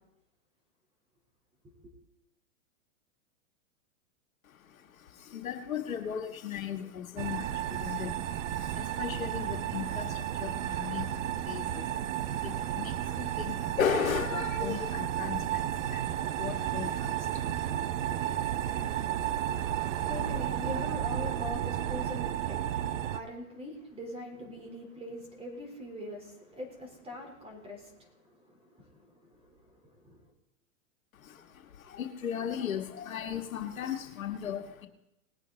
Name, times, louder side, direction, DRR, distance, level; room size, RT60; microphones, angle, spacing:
voice 1, 4.4-17.7 31.1-34.9, left 8 dB, 90° left, 6 dB, 1.6 m, -37 dB
sound 1, 7.2-23.2, right 11 dB, 65° right, 0.8 m, -32 dB
voice 2, 19.6-30.2, left 1 dB, 15° right, 2 dB, 3.7 m, -43 dB
20.0 x 8.6 x 3.9 m, 0.85 s
hypercardioid pair, 135°, 40 cm